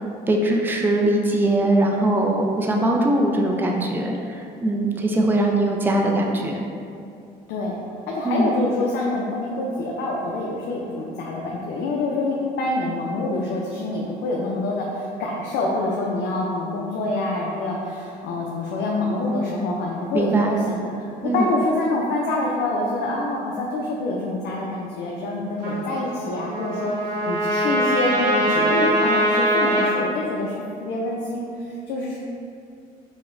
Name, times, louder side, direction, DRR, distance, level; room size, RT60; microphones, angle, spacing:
voice 1, 0.3-6.6 8.2-8.5 20.1-20.6 21.2-21.5, right 1 dB, 10° right, 1 dB, 0.3 m, -21 dB
voice 2, 2.6-3.0 7.5-7.8 8.1-32.2, left 2 dB, 80° left, -3 dB, 0.4 m, -26 dB
Trumpet, 25.6-29.9, right 1 dB, 70° right, 1.0 m, -22 dB
4.7 x 2.1 x 2.5 m, 2.4 s
cardioid pair, 110°, 17 cm